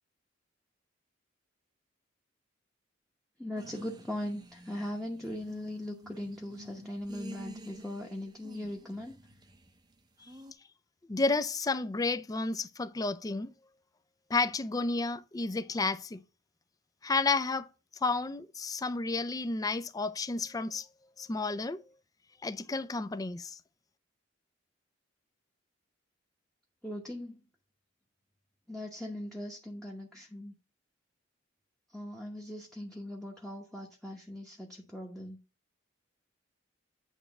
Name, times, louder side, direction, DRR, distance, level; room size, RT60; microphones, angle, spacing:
voice 1, 3.4-9.2 26.8-27.4 28.7-30.5 31.9-35.4, left 1 dB, 5° left, 0.9 m, -39 dB
sound 1, 3.6-10.5, right 1 dB, 20° right, 0.6 m, -51 dB
voice 2, 11.1-13.5 14.3-16.2 17.0-17.7 18.0-20.9 21.2-21.8 22.4-23.6, left 3 dB, 20° left, 0.4 m, -31 dB
9.1 x 3.2 x 5.8 m
head